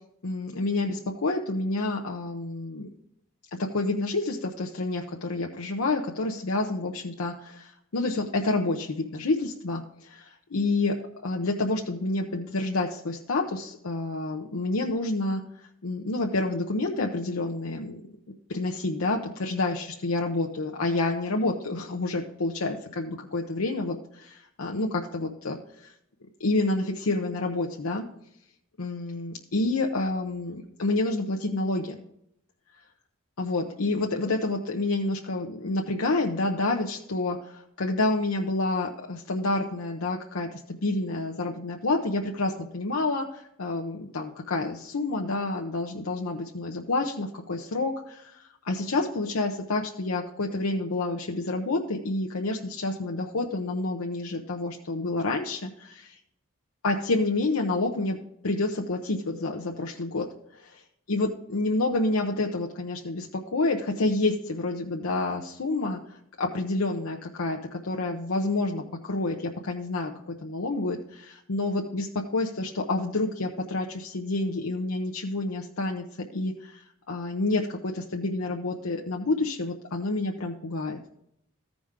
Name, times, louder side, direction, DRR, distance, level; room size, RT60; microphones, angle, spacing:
voice 1, 0.2-2.9 3.5-11.0 11.2-15.4 15.8-18.0 18.5-25.9 26.4-28.1 28.8-32.0 33.4-56.2 56.8-58.2 58.4-60.3 60.5-76.1 76.3-81.0, left 2 dB, 85° left, 1 dB, 0.8 m, -29 dB
14.5 x 5.0 x 3.7 m, 0.75 s
head